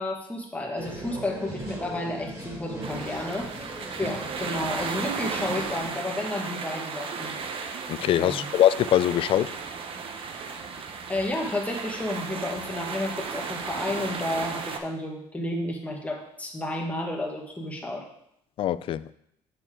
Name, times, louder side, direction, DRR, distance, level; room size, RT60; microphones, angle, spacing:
voice 1, 0.0-3.5 4.0-7.4 8.2-8.5 11.1-18.1, left 1 dB, 10° left, 1.6 m, -31 dB
sound 1, 0.8-5.9, right 1 dB, 25° right, 3.1 m, -39 dB
sound 2, 2.8-14.8, right 5 dB, 55° right, 0.9 m, -35 dB
voice 2, 7.9-9.5 18.6-19.1, left 12 dB, 55° left, 0.4 m, -22 dB
6.8 x 6.6 x 3.8 m
cardioid pair, 100°, 11 cm